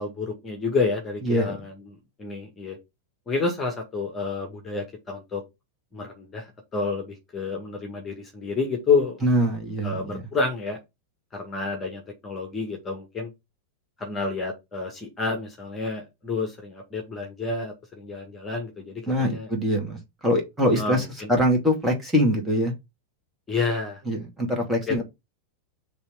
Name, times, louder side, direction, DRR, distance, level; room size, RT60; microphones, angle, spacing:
voice 1, 0.0-2.8 3.3-5.4 5.9-6.5 6.7-9.2 9.8-10.8 11.3-13.3 14.0-19.5 20.7-21.4 23.5-24.0 24.9-25.0, left 4 dB, 20° left, 1.9 m, -29 dB
voice 2, 1.3-1.6 9.2-10.2 19.1-20.0 20.2-22.7 24.1-25.0, equal, 5° right, 2.5 m, -23 dB
5.4 x 3.4 x 5.6 m
figure-of-eight pair, 90°, 0 cm